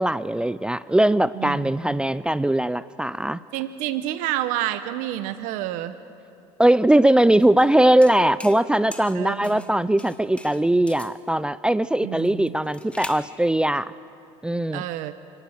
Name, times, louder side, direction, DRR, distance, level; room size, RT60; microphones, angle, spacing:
voice 1, 0.0-3.4 6.6-13.9 14.4-14.8, right 1 dB, 5° right, 16 dB, 0.4 m, -20 dB
voice 2, 1.3-2.1 3.5-6.0 9.1-9.7 12.0-12.5 14.7-15.1, right 13 dB, 75° right, 12 dB, 0.9 m, -29 dB
sound 1, 7.4-7.7 8.0-8.6 8.9-9.7 10.0-11.2 12.2-13.3, left 1 dB, 10° left, 1.5 m, -41 dB
29.0 x 18.0 x 6.5 m, 2.8 s
supercardioid pair, 100°, 14 cm